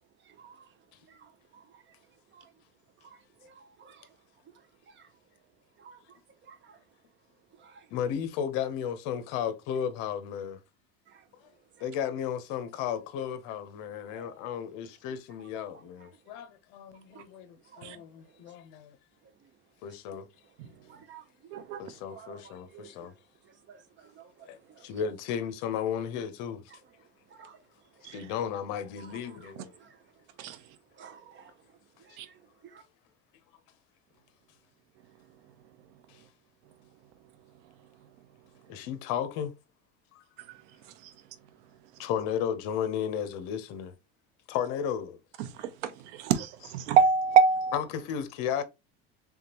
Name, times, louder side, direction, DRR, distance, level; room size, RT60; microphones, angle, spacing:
voice 1, 3.4-4.1 5.0-5.1 5.8-6.0 6.5-6.8 7.6-7.7 14.1-14.4 17.1-17.2 17.7-18.0 20.9-21.2 22.1-22.9 23.7-24.2 27.3-27.6 29.0-29.1 29.8-29.9 31.0-31.5 32.1-32.3 32.7-32.8, right 7 dB, 35° right, 0.8 m, -52 dB
voice 2, 7.9-10.6 11.8-19.0 19.8-20.3 21.8-23.1 24.5-26.6 28.0-29.7 38.7-39.5 40.1-40.2 42.0-43.9 44.5-45.2 47.7-48.6, left 8 dB, 65° left, 0.8 m, -34 dB
voice 3, 21.5-21.8 28.1-28.2 30.4-30.6 32.2-32.3 45.4-45.7 46.1-47.8, right 6 dB, 85° right, 0.8 m, -24 dB
3.6 x 3.6 x 2.9 m
supercardioid pair, 130°, 34 cm